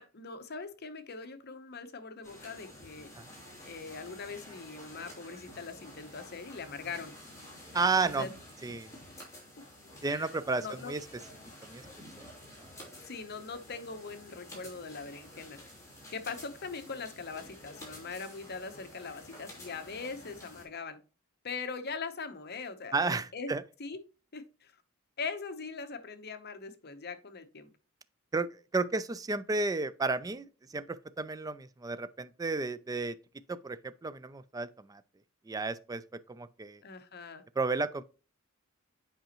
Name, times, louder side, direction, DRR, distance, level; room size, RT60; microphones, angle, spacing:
voice 1, 0.0-3.1 3.6-7.1 7.7-8.3 10.0-10.3 10.6-10.9 13.0-15.6 16.1-21.0 21.4-23.5 23.8-24.0 24.3-24.7 25.2-27.7 36.8-37.4, left 4 dB, 50° left, 0.9 m, -41 dB
sound 1, 2.2-20.6, left 1 dB, 15° left, 3.1 m, -50 dB
voice 2, 7.7-8.2 8.6-8.9 10.0-11.0 11.6-11.8 12.2-12.3 12.8-12.9 22.9-23.6 28.3-33.2 33.5-35.0 35.5-36.8 37.6-38.0, right 3 dB, 15° right, 0.3 m, -32 dB
7.8 x 5.0 x 3.0 m
head